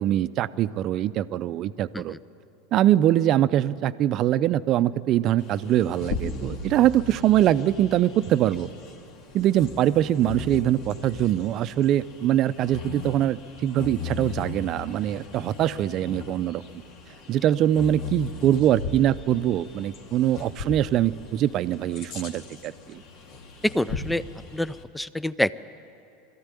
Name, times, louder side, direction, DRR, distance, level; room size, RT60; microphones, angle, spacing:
voice 1, 0.0-2.1 2.7-8.7 9.3-16.6 17.3-23.0, right 12 dB, 45° right, 14 dB, 0.6 m, -23 dB
Bird vocalization bird call bird song, 5.4-24.8, left 4 dB, 55° left, 2.1 m, -38 dB
voice 2, 23.7-24.2 24.5-25.6, left 1 dB, 5° left, 17 dB, 0.5 m, -27 dB
21.0 x 14.5 x 9.9 m, 2.7 s
hypercardioid pair, 95°, 0 cm